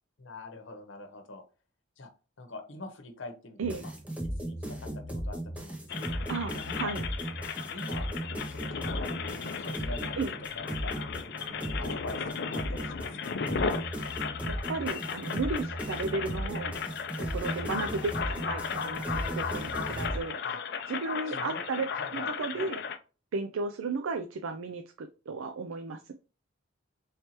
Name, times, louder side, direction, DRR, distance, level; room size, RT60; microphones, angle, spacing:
voice 1, 0.2-1.4 2.0-2.1 2.4-3.9 4.2-6.2 6.5-6.9 7.7-8.1 8.5-10.2 10.5-10.9 11.6-13.3 20.4-20.6 21.3-21.6 21.9-22.3, left 2 dB, 70° left, 6 dB, 0.9 m, -44 dB
sound 1, 3.6-20.2, right 1 dB, 5° right, 0.6 m, -36 dB
sound 2, 5.9-23.0, left 6 dB, 55° left, 0.4 m, -36 dB
voice 2, 6.3-7.0 10.2-10.3 14.5-16.7 17.2-20.4 20.9-21.9 22.1-22.8 23.3-26.1, right 4 dB, 90° right, 7 dB, 0.4 m, -34 dB
4.4 x 3.3 x 2.9 m, 0.34 s
head